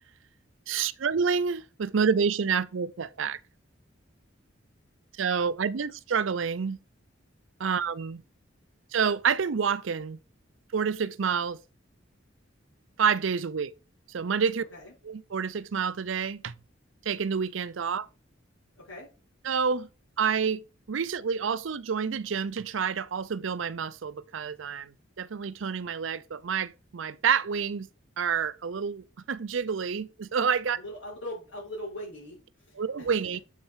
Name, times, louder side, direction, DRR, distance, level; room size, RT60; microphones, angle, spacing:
voice 1, 0.7-3.4 5.2-6.8 7.6-8.2 8.9-10.2 10.7-11.6 13.0-13.7 14.1-14.6 15.0-16.5 17.1-18.1 19.4-19.9 20.2-20.6 20.9-27.9 28.2-30.8 32.8-33.4, right 6 dB, 75° right, 0.5 m, -28 dB
voice 2, 18.8-19.1 30.7-33.1, left 1 dB, 80° left, 5.4 m, -41 dB
7.4 x 6.4 x 4.7 m
head